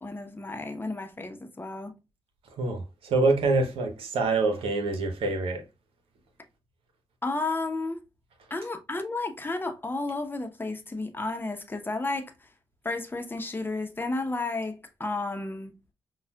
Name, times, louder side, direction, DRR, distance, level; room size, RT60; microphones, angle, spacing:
voice 1, 0.0-2.0 7.2-8.0 8.5-12.3 12.8-15.8, left 2 dB, 20° left, 0.9 m, -32 dB
voice 2, 2.6-5.6, right 3 dB, 75° right, 1.0 m, -26 dB
5.5 x 2.4 x 2.3 m
supercardioid pair, 55°, 9 cm